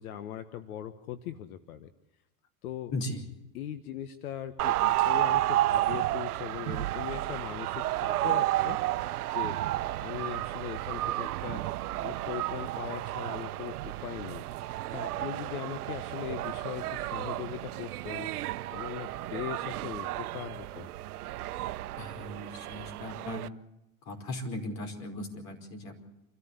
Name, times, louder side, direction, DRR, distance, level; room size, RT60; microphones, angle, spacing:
voice 1, 0.0-1.9 2.6-3.0 3.5-8.8 9.3-9.6 10.0-11.6 12.0-14.4 14.9-20.9, left 11 dB, 75° left, 11 dB, 1.4 m, -40 dB
voice 2, 2.9-3.2 22.0-23.4 24.0-26.0, left 1 dB, 40° left, 4 dB, 5.1 m, -37 dB
sound 1, 4.6-23.5, right 15 dB, 85° right, 0.9 m, -32 dB
27.5 x 14.0 x 8.3 m, 0.92 s
supercardioid pair, 135°, 44 cm